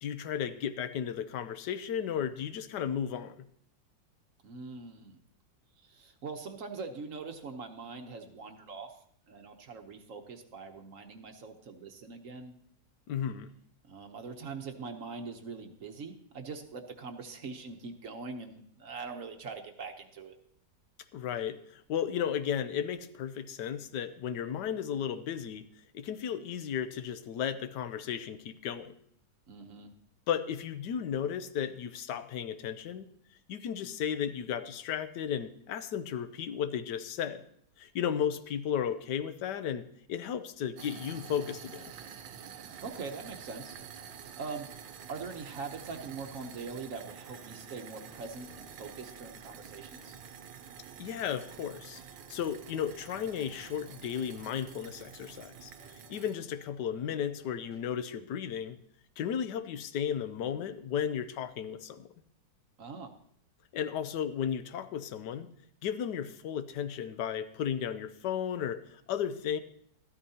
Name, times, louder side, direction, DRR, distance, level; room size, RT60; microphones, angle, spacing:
voice 1, 0.0-3.4 13.1-13.5 21.1-25.6 25.9-28.9 30.3-33.1 33.5-37.4 37.8-41.9 51.0-52.0 52.3-58.8 59.2-62.1 63.7-65.5 65.8-69.6, left 8 dB, 75° left, 11 dB, 1.2 m, -34 dB
voice 2, 4.4-5.2 5.8-8.9 9.3-12.6 13.8-20.4 29.5-29.9 42.8-43.8 44.4-44.7 45.1-50.2 62.8-63.1, right 4 dB, 55° right, 5 dB, 1.1 m, -42 dB
sound 1, 40.8-56.3, right 8 dB, 90° right, 1.4 m, -48 dB
sound 2, 42.7-47.0 48.1-57.8, right 4 dB, 50° left, 2.6 m, -59 dB
13.5 x 12.5 x 2.8 m, 0.67 s
omnidirectional pair, 1.9 m